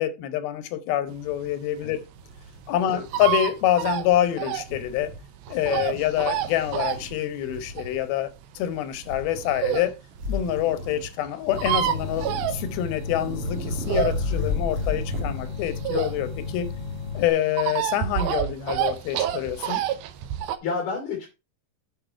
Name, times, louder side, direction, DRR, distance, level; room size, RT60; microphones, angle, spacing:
voice 1, 0.0-2.0 2.7-5.1 5.5-8.3 8.6-9.9 10.3-16.7 17.1-19.8, left 12 dB, 90° left, 2.8 m, -26 dB
sound 1, 1.3-9.9 10.4-10.5 10.7-10.8 11.0-11.1 11.2-13.1 13.5-16.5 16.8-20.6, right 11 dB, 85° right, 2.6 m, -28 dB
sound 2, 1.8-1.9 2.2-3.3 3.7-4.2 4.6-5.2 5.5-7.2 7.5-8.0 9.0-9.8 10.1-11.1 11.5-12.7 13.0-15.4, left 1 dB, 40° right, 2.8 m, -34 dB
voice 2, 2.9-3.3 5.7-6.0 20.6-21.3, left 5 dB, 55° left, 4.2 m, -31 dB
sound 3, 11.5-17.3, left 4 dB, 35° left, 2.4 m, -34 dB
8.5 x 6.2 x 4.5 m
omnidirectional pair, 4.2 m